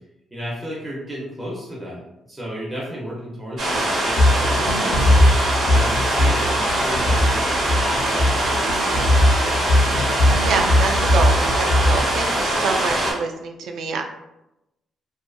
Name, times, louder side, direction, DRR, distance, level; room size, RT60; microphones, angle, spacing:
voice 1, 0.3-2.0 2.3-4.9 5.7-7.6 7.9-9.2, equal, 10° right, -6 dB, 0.5 m, -33 dB
sound 1, 3.6-13.1, right 1 dB, 50° right, 0.7 m, -22 dB
sound 2, 4.2-12.2, left 1 dB, 60° left, 0.4 m, -19 dB
voice 2, 10.4-14.0, right 4 dB, 70° right, 4 dB, 0.3 m, -26 dB
2.5 x 2.4 x 2.2 m, 0.89 s
cardioid pair, 170°, 0 cm